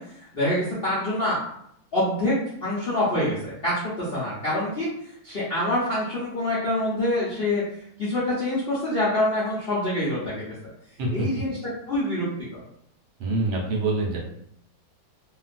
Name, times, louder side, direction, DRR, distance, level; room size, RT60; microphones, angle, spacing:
voice 1, 0.0-1.4 1.9-2.3 2.6-4.9 5.2-10.4 11.1-11.6 11.9-12.6, left 1 dB, 60° left, -10 dB, 0.6 m, -26 dB
voice 2, 13.2-14.2, right 2 dB, 80° right, -1 dB, 1.5 m, -25 dB
2.9 x 2.7 x 2.5 m, 0.71 s
omnidirectional pair, 2.2 m